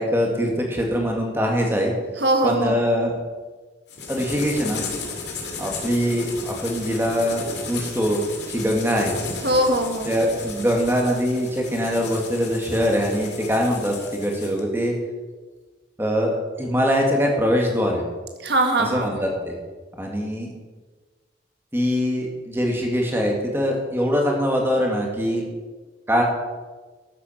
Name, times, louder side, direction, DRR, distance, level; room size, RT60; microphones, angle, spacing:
voice 1, 0.0-1.9 2.4-3.2 4.1-4.8 5.6-8.2 8.5-9.2 10.1-14.9 16.0-18.0 18.9-19.6 20.0-20.5 21.7-25.4 26.1-26.2, equal, 10° right, 0 dB, 2.1 m, -23 dB
voice 2, 2.2-2.8 9.4-10.2 18.4-19.2, right 1 dB, 60° right, 4 dB, 1.8 m, -21 dB
sound 1, 3.9-14.6, left 3 dB, 60° left, 2.5 m, -34 dB
13.5 x 8.2 x 5.9 m, 1.3 s
head